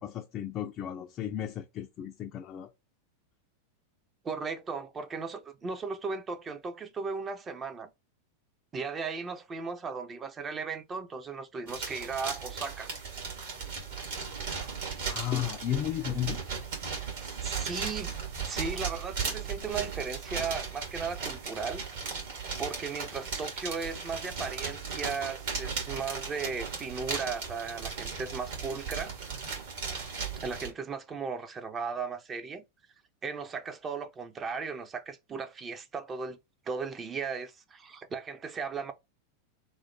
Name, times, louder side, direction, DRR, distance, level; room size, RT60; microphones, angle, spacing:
voice 1, 0.0-2.7 15.1-16.4, left 11 dB, 30° left, 0.4 m, -34 dB
voice 2, 4.2-7.9 8.7-12.9 17.4-21.8 22.6-29.1 30.4-32.6 33.2-36.4 36.7-38.9, right 5 dB, 20° right, 0.5 m, -36 dB
sound 1, 11.7-30.7, right 5 dB, 55° right, 1.5 m, -36 dB
3.1 x 2.1 x 4.0 m
figure-of-eight pair, 90°, 0 cm